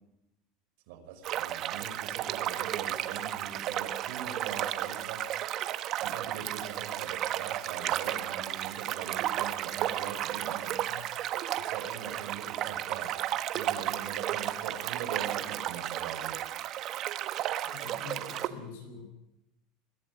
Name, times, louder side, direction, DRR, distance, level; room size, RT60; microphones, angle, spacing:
voice 1, 0.9-5.6 6.0-10.7 11.5-13.2 13.5-16.4, right 7 dB, 70° right, 5 dB, 5.3 m, -42 dB
sound 1, 1.2-18.5, right 12 dB, 40° right, 1.2 m, -33 dB
voice 2, 17.7-19.1, left 5 dB, 85° left, 5 dB, 7.3 m, -45 dB
23.0 x 15.0 x 8.8 m, 0.86 s
supercardioid pair, 150°, 0 cm